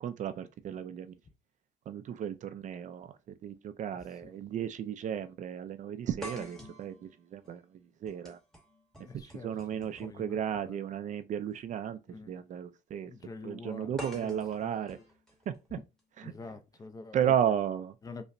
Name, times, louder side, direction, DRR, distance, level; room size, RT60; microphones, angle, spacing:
voice 1, 0.0-1.2 1.9-3.2 3.4-8.4 9.1-12.0 12.3-13.1 13.4-15.0 15.5-15.6 17.1-17.9, right 9 dB, 45° right, 0.4 m, -34 dB
sound 1, 3.0-3.1 4.2-4.4 4.7-4.8 6.2-10.2 11.4-11.6 14.0-16.0, equal, 5° left, 1.0 m, -47 dB
voice 2, 9.0-10.8 12.1-12.3 13.0-15.0 16.2-17.4 18.0-18.2, left 3 dB, 20° left, 0.5 m, -47 dB
5.1 x 2.1 x 2.5 m
cardioid pair, 110°, 17 cm